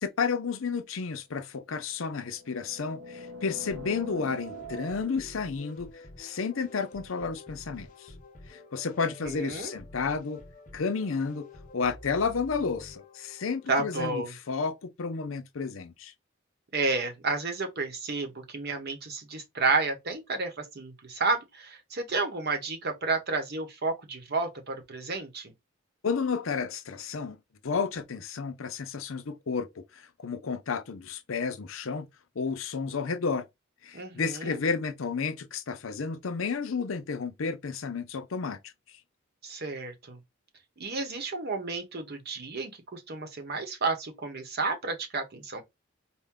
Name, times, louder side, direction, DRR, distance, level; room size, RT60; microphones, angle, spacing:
voice 1, 0.0-8.1 8.5-10.4 10.7-11.5 11.7-16.1 26.0-27.4 27.6-32.1 32.4-33.4 33.8-38.7, left 5 dB, 75° left, 0.6 m, -32 dB
sound 1, 1.9-5.4, equal, 70° right, 0.7 m, -43 dB
sound 2, 3.7-13.8, left 2 dB, 40° left, 0.8 m, -49 dB
voice 2, 9.2-9.7 13.7-14.3 16.7-25.5 33.9-34.6 39.4-40.2 40.8-45.6, right 3 dB, 50° right, 1.0 m, -31 dB
4.4 x 2.2 x 3.6 m
head